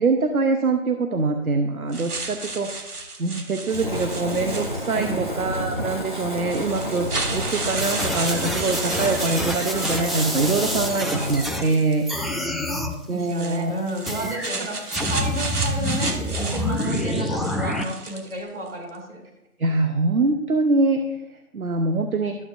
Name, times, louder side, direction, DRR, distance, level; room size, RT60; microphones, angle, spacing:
voice 1, 0.0-12.1 13.1-13.7 19.6-22.4, right 3 dB, 70° right, 6 dB, 0.9 m, -24 dB
sound 1, 1.9-5.1 5.9-6.0 6.5-12.3 13.2-18.4, right 3 dB, 85° right, 1.5 m, -32 dB
Fire, 3.7-11.5, equal, 35° right, 0.6 m, -30 dB
voice 2, 4.9-5.3 12.2-19.2, right 2 dB, 50° right, -1 dB, 3.1 m, -32 dB
sound 2, 7.8-11.7 12.1-12.9 14.1-14.5 14.9-17.8, left 1 dB, ahead, 0.4 m, -28 dB
12.0 x 7.2 x 2.6 m, 0.93 s
figure-of-eight pair, 170°, 44 cm